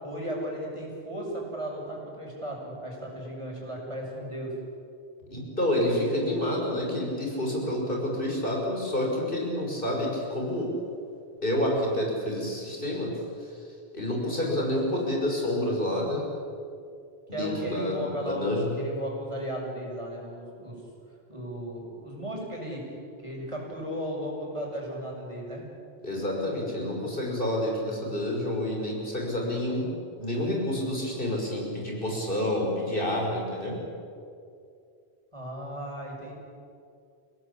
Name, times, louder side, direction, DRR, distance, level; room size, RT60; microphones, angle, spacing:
voice 1, 0.0-4.5 14.3-14.6 17.3-20.8 21.3-22.8 23.2-25.6 35.3-36.4, equal, 30° right, -2 dB, 6.6 m, -35 dB
voice 2, 5.3-10.7 11.4-13.1 13.4-13.5 13.9-16.2 17.3-18.7 26.0-29.9 30.2-33.8, left 1 dB, 55° left, -1 dB, 6.5 m, -28 dB
30.0 x 18.0 x 8.7 m, 2.5 s
omnidirectional pair, 1.1 m